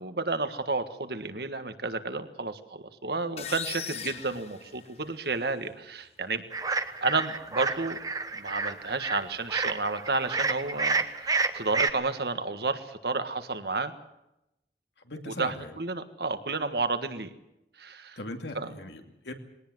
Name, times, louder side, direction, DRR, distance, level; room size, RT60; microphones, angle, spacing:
voice 1, 0.0-6.4 7.0-8.0 8.3-13.9 15.3-17.3 17.8-18.2 18.5-18.8, right 3 dB, 70° right, 9 dB, 1.6 m, -31 dB
sound 1, 3.4-5.3, left 7 dB, 35° left, 1.4 m, -38 dB
sound 2, 6.5-11.9, right 4 dB, 20° right, 1.1 m, -29 dB
voice 2, 15.0-15.7 18.2-19.3, left 2 dB, 85° left, 5 dB, 2.6 m, -39 dB
21.0 x 18.5 x 7.9 m, 0.88 s
head